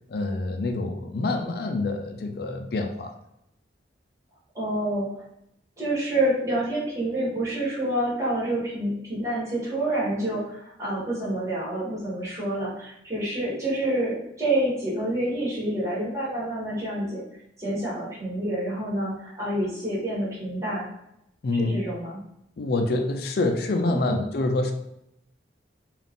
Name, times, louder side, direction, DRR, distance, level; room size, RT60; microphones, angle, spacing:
voice 1, 0.1-3.1 21.4-21.8 22.6-24.7, left 2 dB, 55° left, 4 dB, 0.4 m, -26 dB
voice 2, 4.5-5.1 5.8-17.2 17.6-20.9 21.5-22.2 23.9-24.2, right 1 dB, 15° right, -8 dB, 1.5 m, -28 dB
3.8 x 2.4 x 3.6 m, 0.79 s
head